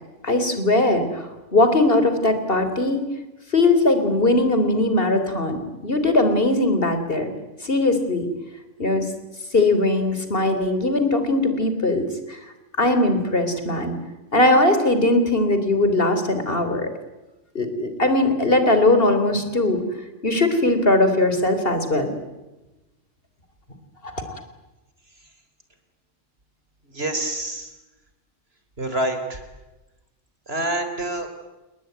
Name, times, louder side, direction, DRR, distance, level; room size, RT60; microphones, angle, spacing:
voice 1, 0.2-1.2 1.5-3.0 3.5-7.3 7.6-8.3 8.8-9.1 9.5-12.4 12.8-13.9 14.3-16.9 17.5-19.8 20.2-22.1 24.0-24.2, left 2 dB, 45° left, 8 dB, 3.8 m, -20 dB
voice 2, 26.9-27.7 28.8-29.4 30.5-31.3, right 1 dB, 50° right, 7 dB, 4.2 m, -26 dB
29.5 x 20.0 x 9.4 m, 1.1 s
omnidirectional pair, 1.3 m